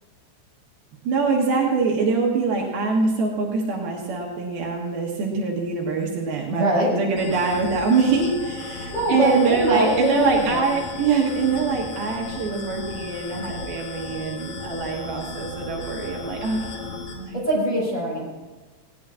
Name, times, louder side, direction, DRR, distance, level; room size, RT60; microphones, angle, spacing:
voice 1, 1.0-16.6 17.1-17.4, right 4 dB, 70° right, -1 dB, 3.0 m, -24 dB
voice 2, 6.5-6.9 8.9-10.6 17.4-18.2, right 1 dB, 10° left, -5 dB, 5.4 m, -22 dB
sound 1, 7.2-17.1, left 3 dB, 60° left, 2.0 m, -35 dB
19.5 x 17.5 x 2.5 m, 1.2 s
omnidirectional pair, 4.7 m